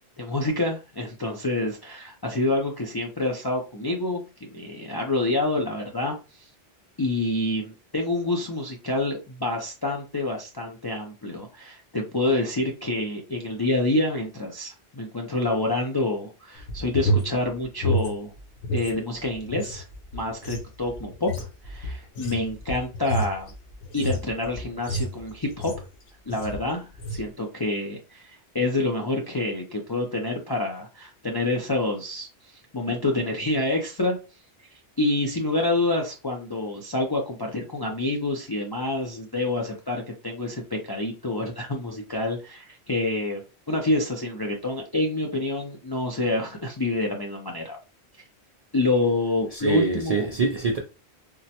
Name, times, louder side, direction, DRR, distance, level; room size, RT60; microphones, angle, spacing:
voice 1, 0.2-6.2 7.0-18.3 18.7-19.8 20.1-23.5 23.9-25.8 26.3-34.2 35.0-43.4 43.7-47.8 48.7-50.4, left 2 dB, 40° left, 0.3 m, -27 dB
sound 1, 16.6-18.9 19.2-25.9 26.3-26.7 26.9-27.3, right 1 dB, 85° left, 1.0 m, -30 dB
voice 2, 49.5-50.8, right 4 dB, 60° right, 0.4 m, -25 dB
3.6 x 2.1 x 2.8 m
omnidirectional pair, 1.1 m